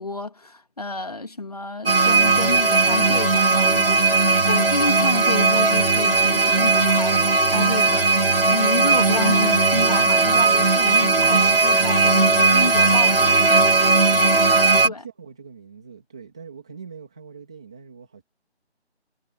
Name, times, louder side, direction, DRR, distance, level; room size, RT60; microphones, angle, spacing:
voice 1, 0.0-8.2 8.5-13.3 14.8-15.0, left 2 dB, 35° left, 3.0 m, -30 dB
sound 1, 1.9-14.9, right 3 dB, 55° right, 2.3 m, -18 dB
voice 2, 14.2-18.2, right 6 dB, 5° right, 2.3 m, -42 dB
figure-of-eight pair, 180°, 34 cm